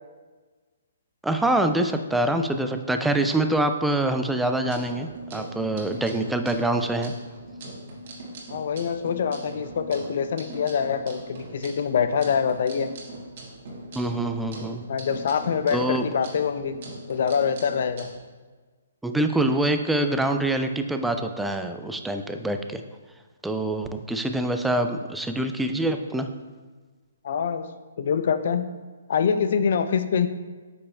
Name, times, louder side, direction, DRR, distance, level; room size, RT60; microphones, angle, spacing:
voice 1, 1.2-7.1 14.0-14.8 15.7-16.0 19.0-22.8 23.4-26.3, right 1 dB, 5° right, 6 dB, 0.3 m, -25 dB
sound 1, 4.5-18.1, right 1 dB, 50° right, 1.4 m, -41 dB
voice 2, 8.5-12.9 14.9-16.7 17.1-18.1 27.2-27.7 28.0-28.7 29.1-30.3, left 7 dB, 60° left, 9 dB, 0.4 m, -25 dB
8.1 x 5.3 x 2.2 m, 1.4 s
hypercardioid pair, 140°, 0 cm